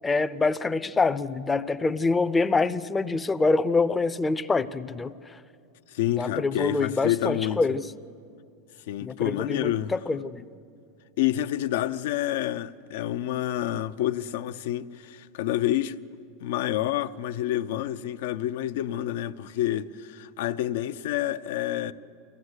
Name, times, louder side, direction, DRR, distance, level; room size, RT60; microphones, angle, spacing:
voice 1, 0.0-5.1 6.1-7.8 9.0-10.4, left 3 dB, 15° left, 0.5 m, -25 dB
voice 2, 5.9-7.6 8.9-9.9 11.2-16.0 16.4-21.9, left 13 dB, 80° left, 0.6 m, -28 dB
23.5 x 16.0 x 8.1 m
supercardioid pair, 145°, 0 cm